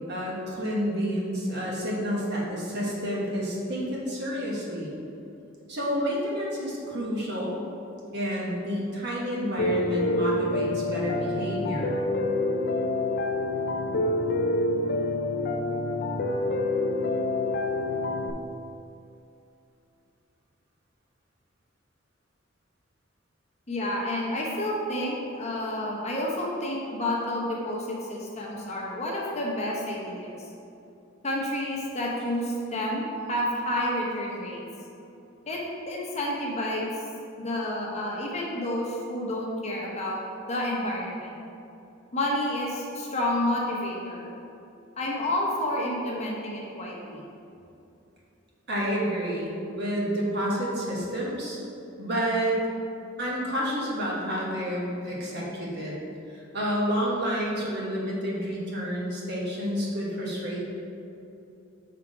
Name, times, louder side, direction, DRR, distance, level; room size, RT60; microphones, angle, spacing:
voice 1, 0.1-4.9 5.7-7.6 8.1-12.0 48.7-51.6 52.0-52.6 53.2-56.0 56.3-60.8, equal, 60° right, -4 dB, 1.3 m, -29 dB
Piano, 9.6-18.3, left 2 dB, 50° left, 0.4 m, -27 dB
voice 2, 23.7-30.3 31.2-34.6 35.5-37.0 37.4-40.2 40.5-41.4 42.1-44.3 45.0-47.2, left 1 dB, 35° left, -3 dB, 1.0 m, -30 dB
5.8 x 3.6 x 4.9 m, 2.7 s
head